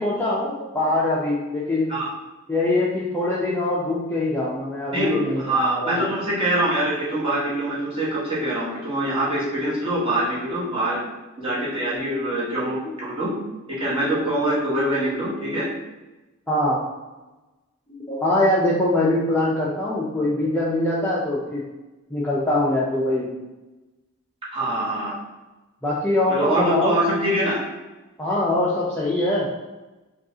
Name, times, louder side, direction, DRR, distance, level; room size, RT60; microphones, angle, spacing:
voice 1, 0.0-1.9 2.5-6.0 12.8-12.9 16.5-16.8 17.9-21.6 22.1-23.3 25.8-27.0 28.2-29.5, left 1 dB, 10° left, -7 dB, 0.5 m, -23 dB
voice 2, 4.9-11.0 11.4-13.3 13.8-15.7 24.5-25.1 26.3-27.6, right 1 dB, 25° right, -8 dB, 1.4 m, -24 dB
5.0 x 2.4 x 2.8 m, 1.1 s
head